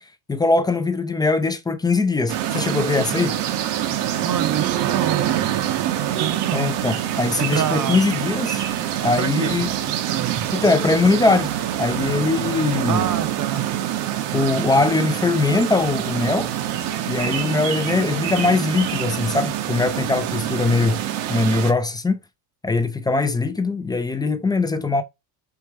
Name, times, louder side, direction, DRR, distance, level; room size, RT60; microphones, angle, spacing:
voice 1, 0.3-3.4 6.5-8.6 9.0-9.7 10.5-11.5 11.8-13.0 14.3-16.5 17.1-21.0 21.3-22.2 22.6-25.0, left 3 dB, 10° left, 0.4 m, -21 dB
sound 1, 2.3-21.7, right 11 dB, 65° right, 0.9 m, -25 dB
voice 2, 4.2-6.7 7.4-8.0 9.0-10.5 12.9-13.8, right 10 dB, 40° right, 0.7 m, -28 dB
4.6 x 2.3 x 4.7 m
supercardioid pair, 110°, 46 cm